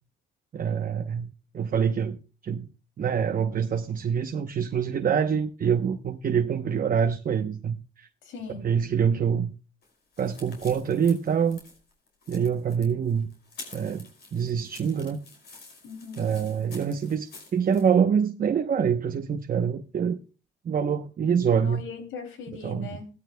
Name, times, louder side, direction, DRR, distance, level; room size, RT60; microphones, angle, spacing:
voice 1, 0.5-2.7 3.0-8.1 8.5-9.5 10.2-11.6 12.3-13.3 13.7-15.2 16.2-20.2 20.6-21.8 22.6-23.0, right 7 dB, 45° right, 0.9 m, -25 dB
voice 2, 8.3-8.7 15.8-16.2 21.5-23.1, left 5 dB, 85° left, 2.9 m, -39 dB
sound 1, 9.8-17.9, left 3 dB, 55° left, 5.4 m, -48 dB
17.0 x 13.0 x 2.2 m
cardioid pair, 90°, 20 cm